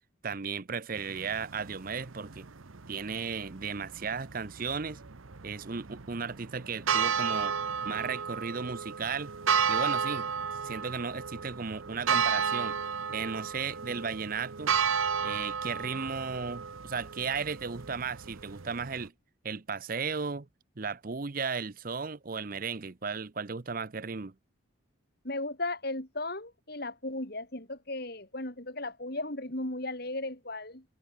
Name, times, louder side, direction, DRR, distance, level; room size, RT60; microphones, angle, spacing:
voice 1, 0.2-2.5 2.9-5.0 5.4-7.5 7.8-9.3 9.7-10.3 10.6-12.8 13.1-14.7 15.2-19.1 19.4-20.5 20.8-24.3, right 5 dB, 45° right, 0.7 m, -35 dB
sound 1, 1.0-19.1, right 7 dB, 85° right, 1.0 m, -33 dB
voice 2, 25.2-30.8, left 2 dB, 50° left, 3.6 m, -36 dB
head